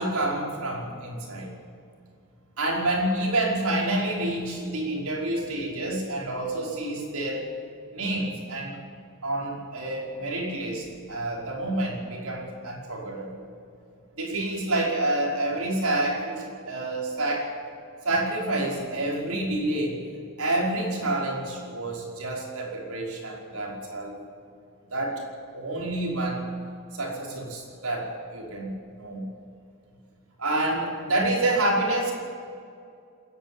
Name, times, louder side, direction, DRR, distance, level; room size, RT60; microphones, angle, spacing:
voice 1, 0.0-1.5 2.6-7.4 7.9-8.8 9.2-13.4 14.2-17.5 18.0-20.0 20.4-24.1 24.9-25.3 25.5-26.5 26.9-28.7 29.0-29.2 30.4-32.1, right 1 dB, 85° right, -1 dB, 5.5 m, -28 dB
28.0 x 11.0 x 8.9 m, 2.4 s
head